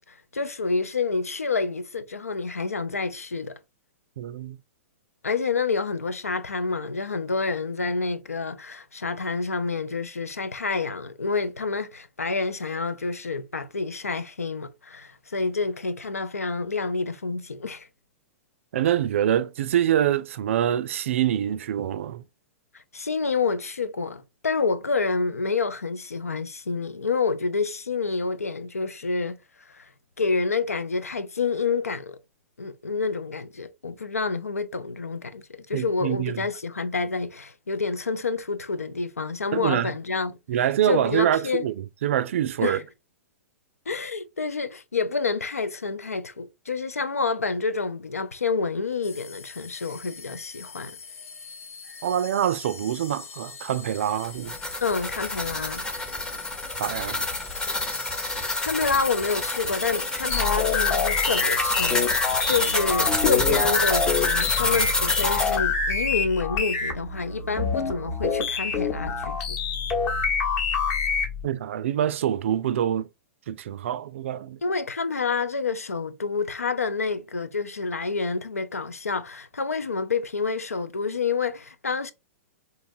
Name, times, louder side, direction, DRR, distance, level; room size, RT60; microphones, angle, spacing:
voice 1, 0.0-3.6 5.2-17.9 22.9-29.9 30.2-32.2 32.6-40.4 40.8-41.7 42.6-42.8 43.9-51.0 54.8-55.8 58.6-69.6 74.6-82.1, left 4 dB, 90° left, 0.5 m, -28 dB
voice 2, 4.2-4.6 18.7-22.2 35.7-36.4 39.5-39.9 40.5-42.8 52.0-54.6 56.8-57.3 71.4-73.1 73.5-74.6, right 10 dB, 60° right, 0.4 m, -25 dB
sound 1, 49.0-62.5, left 5 dB, 65° left, 0.9 m, -43 dB
sound 2, 54.2-65.6, left 2 dB, 10° left, 0.7 m, -27 dB
sound 3, 60.3-71.4, left 5 dB, 35° left, 1.0 m, -26 dB
3.9 x 2.6 x 2.6 m
figure-of-eight pair, 110°, 8 cm